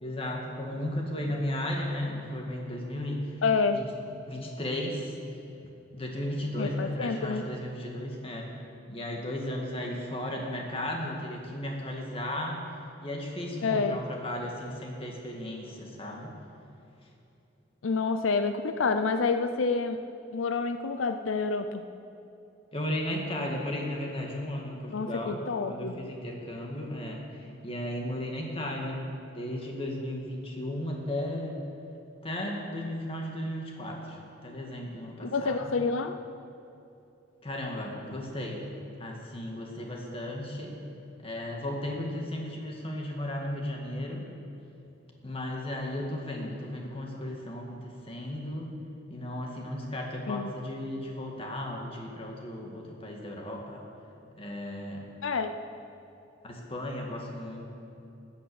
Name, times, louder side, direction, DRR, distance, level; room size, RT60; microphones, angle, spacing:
voice 1, 0.0-3.3 3.7-3.8 4.2-5.1 5.9-8.5 8.9-12.6 13.0-16.4 22.7-27.3 27.6-29.1 29.3-31.6 32.2-35.7 37.4-38.6 39.0-40.8 41.2-44.3 45.2-48.7 49.1-53.9 54.4-55.1 56.4-57.7, left 1 dB, 30° left, 0 dB, 1.9 m, -35 dB
voice 2, 3.4-3.8 6.6-7.4 13.6-14.0 17.8-20.0 20.3-21.8 24.9-26.0 35.2-36.2 50.3-50.6 55.2-55.6, left 4 dB, 90° left, 9 dB, 0.6 m, -28 dB
14.5 x 9.0 x 7.0 m, 2.8 s
head